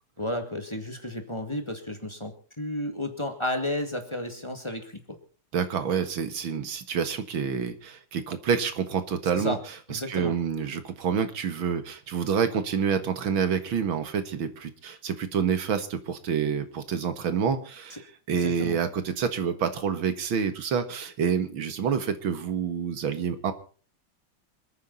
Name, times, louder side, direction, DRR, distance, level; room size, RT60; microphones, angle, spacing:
voice 1, 0.2-5.2 9.3-9.6 9.9-10.3 17.9-18.0 18.4-18.8, left 1 dB, 15° left, 5 dB, 2.2 m, -32 dB
voice 2, 5.5-9.6 9.9-23.5, right 7 dB, 75° right, 10 dB, 2.4 m, -28 dB
26.5 x 9.5 x 4.1 m, 0.40 s
omnidirectional pair, 2.2 m